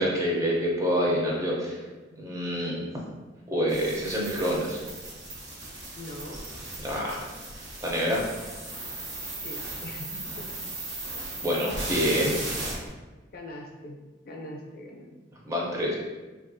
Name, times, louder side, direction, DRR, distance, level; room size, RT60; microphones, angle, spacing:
voice 1, 0.0-1.8 2.2-2.9 3.5-4.8 6.8-7.3 7.8-8.3 11.4-12.4 15.5-15.9, equal, 15° right, -3 dB, 0.5 m, -27 dB
sound 1, 3.7-12.9, right 2 dB, 60° right, 0.9 m, -37 dB
voice 2, 5.9-6.5 9.4-10.5 13.3-14.0 14.2-15.2, left 1 dB, 50° left, 0 dB, 0.5 m, -41 dB
3.3 x 2.3 x 2.5 m, 1.2 s
head